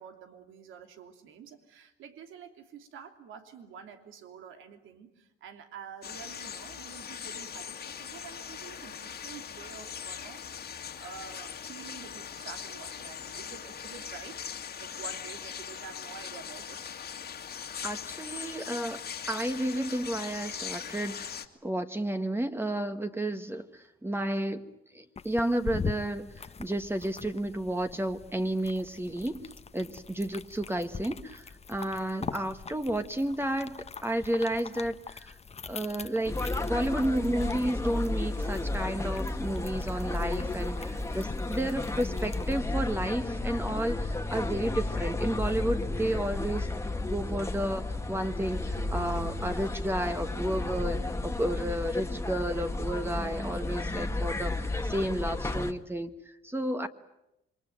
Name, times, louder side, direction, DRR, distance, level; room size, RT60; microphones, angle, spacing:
voice 1, 0.0-16.9, right 7 dB, 80° right, 6 dB, 3.1 m, -48 dB
sound 1, 6.0-21.5, left 8 dB, 55° left, 2.2 m, -40 dB
voice 2, 17.8-24.6 24.9-35.4 35.7-36.4 36.6-46.7 47.0-56.9, right 1 dB, 10° right, 7 dB, 1.5 m, -32 dB
sound 2, 25.2-42.6, left 5 dB, 30° left, 1.2 m, -43 dB
sound 3, 36.3-55.7, left 2 dB, 15° left, 1.8 m, -33 dB
27.0 x 23.0 x 9.2 m, 0.87 s
cardioid pair, 90°, 20 cm